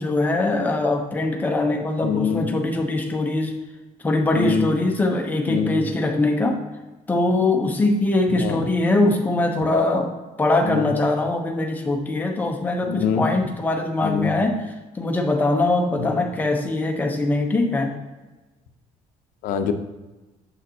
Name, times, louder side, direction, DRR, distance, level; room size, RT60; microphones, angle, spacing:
voice 1, 0.0-3.5 4.0-6.6 7.1-10.1 10.4-14.7 14.9-17.9, left 2 dB, 10° left, 2 dB, 0.7 m, -22 dB
voice 2, 2.0-2.5 4.3-4.7 5.5-5.8 8.4-8.6 10.6-10.9 12.8-13.3 14.0-14.3 16.0-16.2 19.4-19.7, left 6 dB, 80° left, 8 dB, 0.6 m, -24 dB
7.4 x 6.5 x 2.8 m, 1.1 s
cardioid pair, 180°, 14 cm